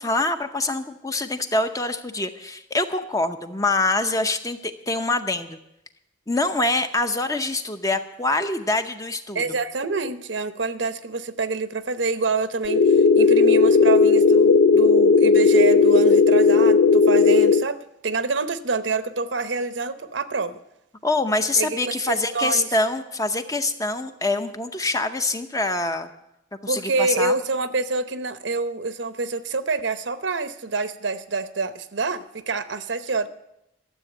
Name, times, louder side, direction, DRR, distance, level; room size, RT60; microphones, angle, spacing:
voice 1, 0.0-5.6 6.3-9.4 21.0-26.1 26.6-27.4, left 2 dB, 20° left, 8 dB, 0.7 m, -25 dB
voice 2, 9.3-20.6 21.6-22.7 26.7-33.3, right 3 dB, 75° right, 11 dB, 0.8 m, -27 dB
sound 1, 12.7-17.6, left 4 dB, 55° left, 0.4 m, -15 dB
12.5 x 7.6 x 9.0 m, 0.84 s
head